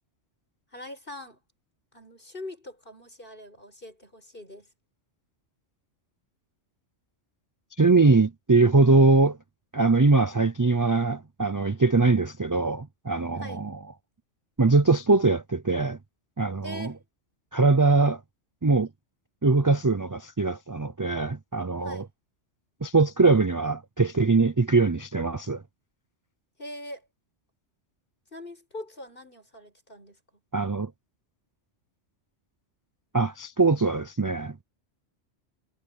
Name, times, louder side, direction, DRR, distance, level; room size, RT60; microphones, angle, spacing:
voice 1, 0.7-1.4 1.9-4.7 13.4-13.6 16.6-17.0 21.8-22.1 26.6-27.1 28.3-30.4, left 1 dB, 45° left, 8.2 m, -42 dB
voice 2, 7.8-9.4 9.7-13.8 14.6-16.0 16.4-16.9 17.5-18.2 18.6-18.9 19.4-22.0 22.8-25.6 30.5-30.9 33.1-34.6, right 3 dB, 25° right, 0.4 m, -22 dB
omnidirectional pair, 1.3 m